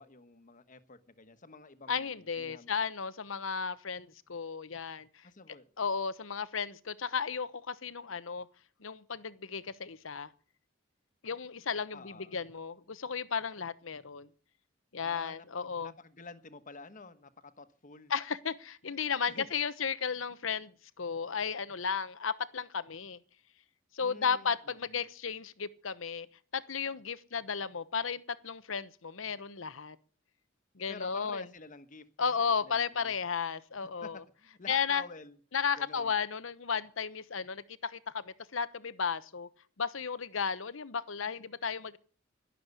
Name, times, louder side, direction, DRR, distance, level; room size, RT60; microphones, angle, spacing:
voice 1, 0.0-2.7 5.2-5.7 11.9-12.4 15.0-18.1 19.3-19.5 24.0-25.0 30.9-33.1 33.8-35.4 35.8-36.1, left 3 dB, 40° left, 1.3 m, -50 dB
voice 2, 1.9-5.1 5.8-8.5 8.8-10.3 11.2-14.3 14.9-15.9 18.1-20.7 21.0-23.2 23.9-26.3 26.5-30.0 30.8-31.4 32.2-34.2 34.7-35.0 35.5-39.5 39.8-42.0, left 6 dB, 85° left, 1.0 m, -34 dB
12.0 x 11.5 x 8.3 m
head